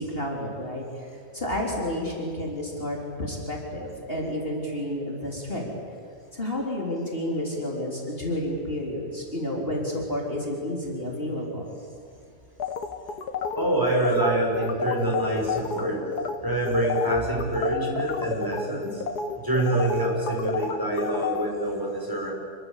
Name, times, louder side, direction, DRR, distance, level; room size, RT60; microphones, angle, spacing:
voice 1, 0.0-5.7 6.3-11.7, left 1 dB, 35° left, -1 dB, 4.3 m, -30 dB
sound 1, 12.6-15.8 16.1-16.4 16.7-21.5, left 6 dB, 90° left, 2.3 m, -30 dB
voice 2, 13.6-16.0 16.4-19.0 19.4-22.3, right 1 dB, 10° right, -1 dB, 5.9 m, -26 dB
27.5 x 23.5 x 8.4 m, 2.3 s
omnidirectional pair, 1.7 m